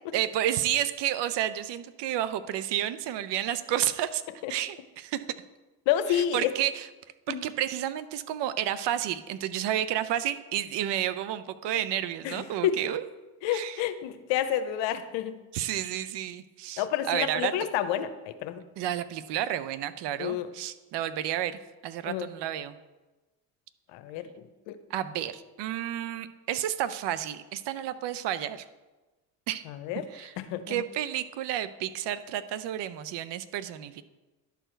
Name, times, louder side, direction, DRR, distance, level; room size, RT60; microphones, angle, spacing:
voice 1, 0.1-4.2 4.5-5.2 6.1-6.9 7.3-13.0 13.5-13.8 15.5-17.5 18.8-22.8 24.9-28.6 29.5-29.6 30.1-30.3 30.7-34.0, right 11 dB, 65° right, 13 dB, 0.7 m, -31 dB
voice 2, 5.9-6.5 7.3-7.4 12.2-12.8 13.4-15.3 16.8-18.6 20.2-20.5 22.1-22.3 23.9-24.3 24.7-24.8 29.7-30.0 30.5-30.8, left 11 dB, 75° left, 10 dB, 0.8 m, -29 dB
11.5 x 4.7 x 4.5 m, 1.2 s
supercardioid pair, 75°, 44 cm